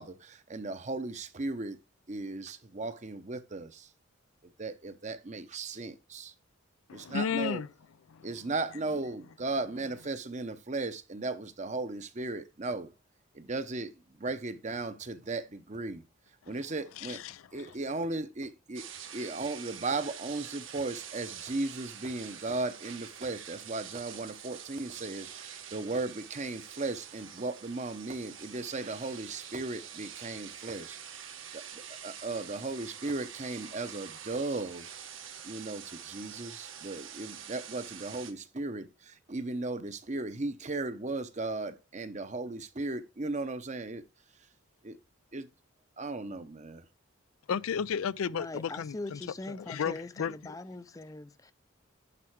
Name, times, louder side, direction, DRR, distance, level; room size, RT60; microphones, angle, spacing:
voice 1, 0.0-1.8 2.1-3.9 4.6-6.3 6.9-7.6 8.2-12.9 13.3-16.0 16.5-17.2 17.5-18.8 19.1-34.9 35.4-44.0 44.8-45.0 45.3-45.5 46.0-46.8, right 3 dB, 35° right, 0.8 m, -36 dB
voice 2, 6.9-7.7 8.1-8.3 16.4-16.6 17.0-17.7 47.5-49.2 49.5-50.5, left 7 dB, 80° left, 0.4 m, -34 dB
sound 1, 18.7-38.3, right 8 dB, 70° right, 1.4 m, -46 dB
voice 3, 48.3-51.5, left 2 dB, 15° left, 0.4 m, -41 dB
11.0 x 4.8 x 4.6 m
head